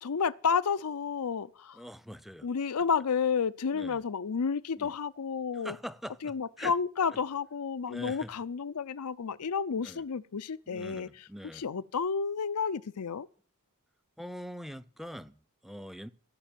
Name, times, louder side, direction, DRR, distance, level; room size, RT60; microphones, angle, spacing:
voice 1, 0.0-1.8 2.4-5.8 6.2-11.1 11.5-13.3, left 6 dB, 85° left, 0.6 m, -31 dB
voice 2, 1.7-2.5 3.7-4.0 4.8-4.9 5.6-6.7 7.9-8.3 9.8-10.0 10.7-11.7 14.2-16.1, equal, ahead, 0.5 m, -43 dB
16.5 x 6.0 x 9.0 m
head